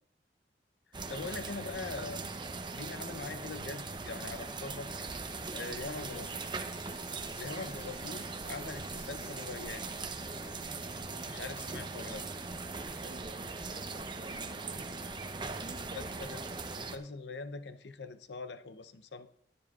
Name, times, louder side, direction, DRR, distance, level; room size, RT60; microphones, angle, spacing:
voice 1, 0.9-2.2 2.7-5.1 5.5-6.3 7.4-9.9 11.3-12.2 15.8-16.5 16.7-19.3, left 3 dB, 75° left, 11 dB, 0.7 m, -42 dB
sound 1, 0.9-17.0, right 3 dB, 25° right, 0.7 m, -40 dB
sound 2, 4.6-14.7 15.0-15.4, left 2 dB, 35° left, 1.6 m, -60 dB
voice 2, 13.0-16.3, right 1 dB, 55° right, 3 dB, 1.4 m, -50 dB
18.0 x 9.9 x 2.4 m, 0.70 s
head